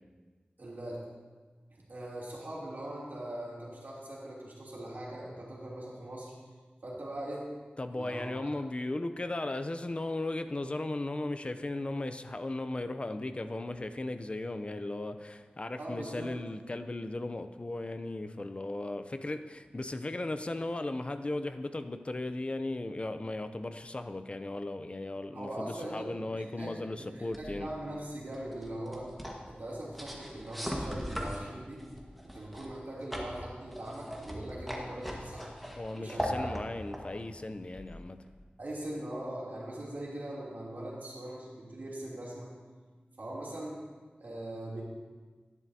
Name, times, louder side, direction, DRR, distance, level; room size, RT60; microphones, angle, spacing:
voice 1, 0.6-1.0 1.7-6.3 6.8-7.5 7.9-8.3 15.8-16.3 25.3-29.1 29.4-31.9 32.2-35.5 36.0-36.5 38.6-42.5 43.2-43.8 44.2-44.8, right 1 dB, 70° right, -6 dB, 2.8 m, -41 dB
voice 2, 7.8-27.7 35.8-38.2, left 2 dB, 35° left, 10 dB, 0.5 m, -36 dB
sound 1, 27.3-38.4, equal, ahead, 1.4 m, -41 dB
11.0 x 10.5 x 2.7 m, 1.4 s
wide cardioid pair, 70°, 3 cm